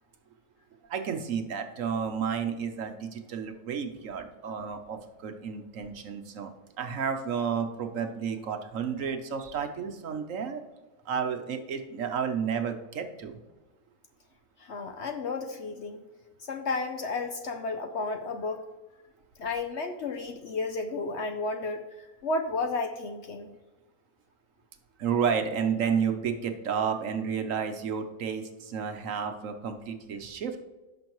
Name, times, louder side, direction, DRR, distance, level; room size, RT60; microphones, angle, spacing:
voice 1, 0.9-6.5 6.8-10.6 11.1-13.4 25.0-30.6, right 7 dB, 60° right, 6 dB, 1.1 m, -31 dB
voice 2, 14.6-16.0 16.4-18.6 19.4-23.5, left 3 dB, 55° left, 6 dB, 0.9 m, -32 dB
16.0 x 6.2 x 3.1 m, 1.2 s
omnidirectional pair, 1.6 m